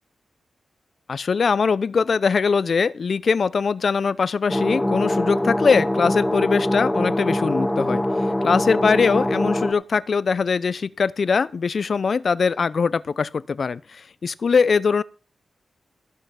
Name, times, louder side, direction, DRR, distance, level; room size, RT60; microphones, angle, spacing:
voice 1, 1.1-15.0, left 5 dB, 60° left, 0.5 m, -22 dB
sound 1, 4.5-9.7, left 1 dB, 10° left, 1.4 m, -23 dB
17.0 x 5.7 x 5.7 m
cardioid pair, 85°, 0 cm